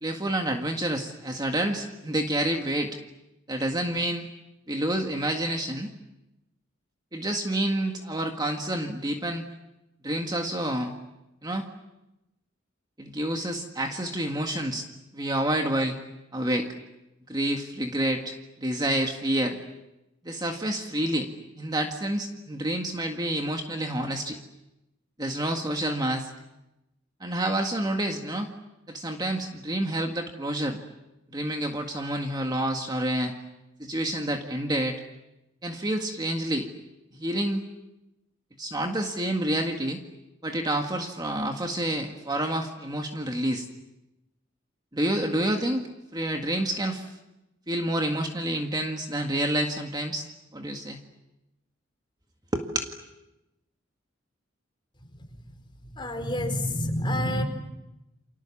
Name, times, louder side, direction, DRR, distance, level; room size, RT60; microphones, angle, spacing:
voice 1, 0.0-3.0 3.5-4.3 4.7-5.9 7.1-9.5 10.0-10.9 11.4-11.7 13.0-14.9 15.1-16.0 16.3-16.7 17.3-19.6 20.2-21.3 21.6-24.4 25.2-26.3 27.2-28.5 28.9-30.8 31.3-33.3 33.8-35.0 35.6-36.7 37.2-37.6 38.6-40.0 40.4-43.7 44.9-45.9 46.1-47.1 47.7-50.3 50.5-51.0 52.5-52.9, right 1 dB, 20° right, 3 dB, 1.9 m, -28 dB
voice 2, 55.9-57.4, left 1 dB, 25° left, 5 dB, 4.5 m, -28 dB
29.5 x 27.0 x 7.3 m, 0.94 s
head